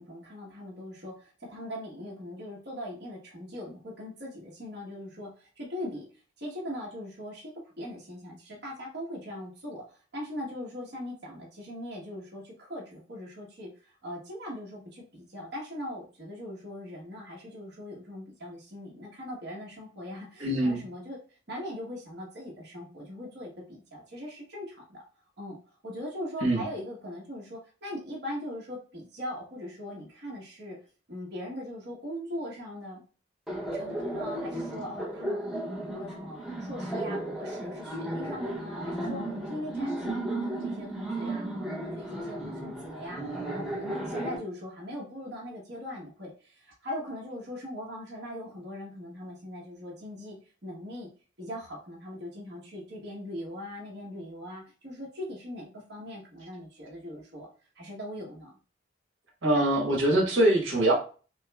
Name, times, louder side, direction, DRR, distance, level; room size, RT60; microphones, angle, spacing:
voice 1, 0.0-6.0 6.4-21.2 21.5-25.0 25.4-25.6 25.8-30.8 31.1-33.0 33.7-39.2 39.5-43.2 43.5-51.1 51.4-57.5 57.8-58.5, left 1 dB, 55° right, -4 dB, 1.2 m, -40 dB
voice 2, 20.4-20.8 26.4-26.6 59.4-60.9, right 1 dB, 80° right, -1 dB, 1.3 m, -23 dB
Laughter, 33.5-44.4, right 1 dB, ahead, 0.7 m, -34 dB
6.0 x 2.0 x 2.3 m, 0.37 s
head